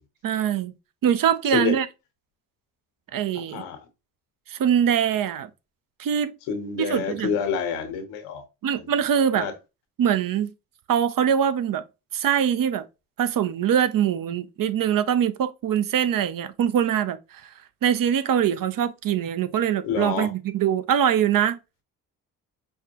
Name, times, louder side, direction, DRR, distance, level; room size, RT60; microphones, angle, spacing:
voice 1, 0.2-0.7 1.0-1.9 3.1-3.6 4.5-5.5 6.0-6.3 6.9-7.3 8.6-9.5 10.0-10.5 10.9-11.8 12.1-12.8 13.2-17.4 17.8-21.6, right 9 dB, 50° right, 0.7 m, -23 dB
voice 2, 3.3-3.8 6.5-8.4 9.4-9.5 19.8-20.3, left 6 dB, 85° left, 1.0 m, -27 dB
5.6 x 2.2 x 2.8 m
supercardioid pair, 65°, 43 cm